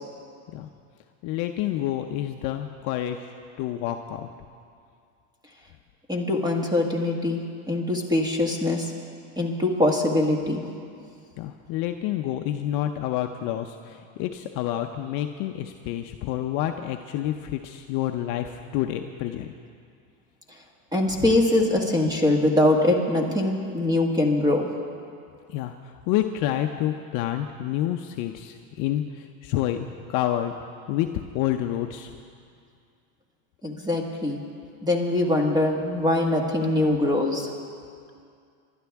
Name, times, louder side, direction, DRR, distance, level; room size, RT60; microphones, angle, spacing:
voice 1, 1.2-3.3 3.6-4.3 11.4-19.5 25.5-25.7 26.1-30.5 30.9-31.1 31.3-32.1, left 12 dB, 40° left, 5 dB, 0.6 m, -28 dB
voice 2, 6.1-7.4 7.7-8.9 9.4-10.6 20.9-24.7 33.6-34.4 34.8-37.5, left 1 dB, 10° right, 1 dB, 1.5 m, -23 dB
27.0 x 12.0 x 3.5 m, 2.3 s
supercardioid pair, 145°, 47 cm